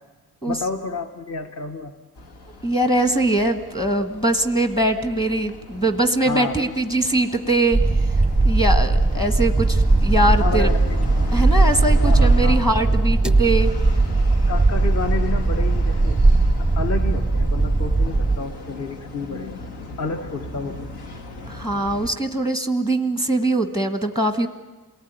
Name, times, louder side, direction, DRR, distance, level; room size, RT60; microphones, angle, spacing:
voice 1, 0.4-2.0 6.2-6.7 9.1-9.3 10.4-11.2 12.0-12.6 13.2-13.4 14.5-16.2 16.6-19.6 20.0-20.9, left 4 dB, 40° left, 6 dB, 1.3 m, -30 dB
sound 1, 2.2-22.1, left 3 dB, 80° left, 2.6 m, -38 dB
voice 2, 2.6-8.2 8.4-10.7 11.3-13.7 21.5-24.5, right 1 dB, 15° left, 8 dB, 1.2 m, -22 dB
sound 2, 7.7-18.4, right 2 dB, ahead, 0.7 m, -18 dB
28.0 x 19.5 x 9.4 m, 1.2 s
cardioid pair, 165°, 38 cm